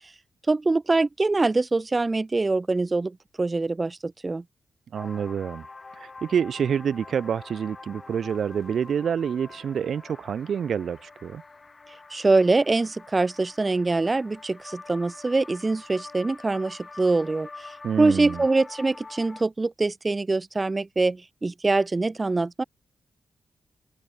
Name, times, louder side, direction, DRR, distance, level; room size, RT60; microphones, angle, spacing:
voice 1, 0.5-4.4 12.1-17.7 18.0-22.6, right 3 dB, 20° right, 0.5 m, -24 dB
sound 1, 4.9-19.4, left 3 dB, 25° left, 3.0 m, -45 dB
voice 2, 4.9-5.7 6.0-11.4 17.8-18.4, right 7 dB, 60° right, 0.6 m, -27 dB
sound 2, 8.0-9.5, left 7 dB, 60° left, 7.6 m, -60 dB
wide cardioid pair, 160°, 0 cm